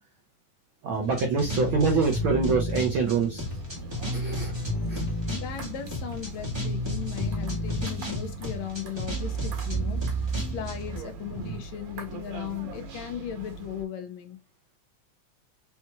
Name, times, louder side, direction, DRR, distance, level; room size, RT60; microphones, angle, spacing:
voice 1, 0.8-3.4 4.1-4.5 4.9-5.0 11.4-11.6, right 4 dB, 80° right, 1.1 m, -25 dB
sound 1, 0.9-7.8, equal, 25° left, 0.9 m, -46 dB
sound 2, 1.0-11.0, equal, 25° right, 0.6 m, -31 dB
sound 3, 3.4-13.9, right 3 dB, 65° right, 2.3 m, -42 dB
voice 2, 5.3-10.0 10.5-14.4, left 10 dB, 75° left, 1.9 m, -37 dB
5.7 x 3.0 x 2.3 m
omnidirectional pair, 3.4 m